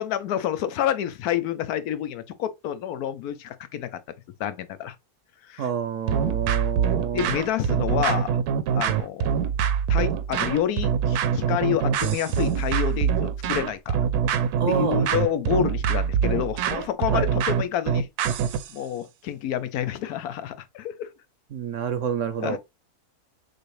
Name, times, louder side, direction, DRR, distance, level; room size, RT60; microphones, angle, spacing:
voice 1, 0.0-4.0 4.4-5.0 5.4-5.7 6.2-6.3 7.1-8.4 8.7-9.3 9.9-14.1 14.7-18.1 18.7-21.1 22.4-22.6, left 10 dB, 75° left, 1.1 m, -28 dB
voice 2, 5.6-7.4 14.6-15.0 17.1-17.3 21.5-22.6, right 8 dB, 60° right, 0.9 m, -28 dB
sound 1, 6.1-18.7, right 7 dB, 80° right, 1.1 m, -24 dB
6.4 x 2.6 x 3.2 m
omnidirectional pair, 1.7 m